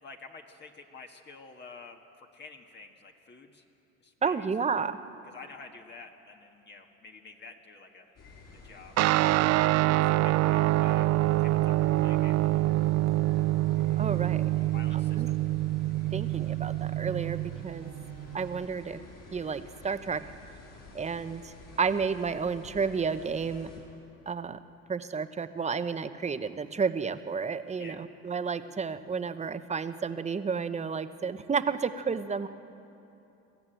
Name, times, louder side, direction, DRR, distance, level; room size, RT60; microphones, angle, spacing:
voice 1, 0.0-3.6 4.0-4.5 5.3-8.1 8.6-9.0 9.5-11.1 11.4-12.4 14.5-15.4 27.8-28.0, left 4 dB, 35° left, 3 dB, 1.6 m, -49 dB
voice 2, 4.2-5.0 14.0-14.4 14.9-15.3 16.1-17.9 18.3-19.0 19.3-20.2 20.9-23.7 24.3-24.6 24.9-32.5, right 5 dB, 25° right, 11 dB, 0.9 m, -31 dB
sound 1, 8.2-23.8, left 3 dB, 60° left, 6.9 m, -51 dB
Guitar, 9.0-18.7, right 17 dB, 60° right, 0.4 m, -26 dB
20.5 x 14.5 x 9.1 m, 2.9 s
supercardioid pair, 100°, 30 cm